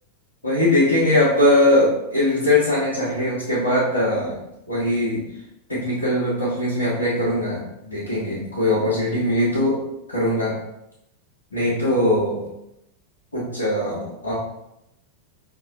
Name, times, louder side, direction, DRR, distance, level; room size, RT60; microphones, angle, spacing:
voice 1, 0.4-4.4 4.7-5.2 5.7-9.8 10.1-10.6 11.5-12.4 13.3-14.3, left 1 dB, 80° left, -9 dB, 1.1 m, -21 dB
5.2 x 3.0 x 2.6 m, 0.84 s
figure-of-eight pair, 90°, 0 cm